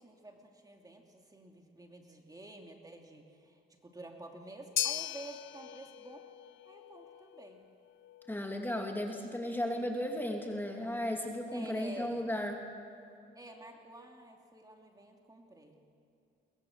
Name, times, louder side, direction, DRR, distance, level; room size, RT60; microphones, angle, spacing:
voice 1, 0.0-6.3 6.6-7.6 11.5-12.2 13.3-15.8, right 2 dB, 20° right, 2 dB, 2.9 m, -50 dB
sound 1, 4.8-13.1, left 12 dB, 75° left, 0.7 m, -42 dB
voice 2, 8.3-12.6, left 1 dB, 10° left, 2 dB, 2.5 m, -35 dB
23.0 x 21.0 x 7.4 m, 2.7 s
cardioid pair, 90°, 20 cm